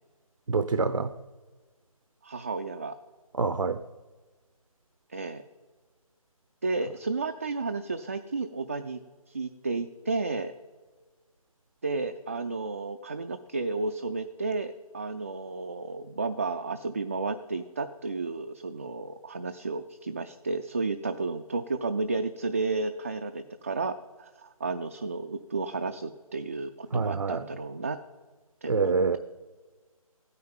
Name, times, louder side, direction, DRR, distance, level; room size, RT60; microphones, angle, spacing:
voice 1, 0.5-1.1 3.4-3.8 26.9-27.4 28.7-29.2, right 4 dB, 60° right, 12 dB, 0.7 m, -26 dB
voice 2, 2.2-3.0 5.1-5.4 6.6-9.0 9.3-10.5 11.8-28.0 28.6-29.2, right 3 dB, 25° right, 7 dB, 0.4 m, -32 dB
14.0 x 9.6 x 9.1 m, 1.3 s
figure-of-eight pair, 155°, 19 cm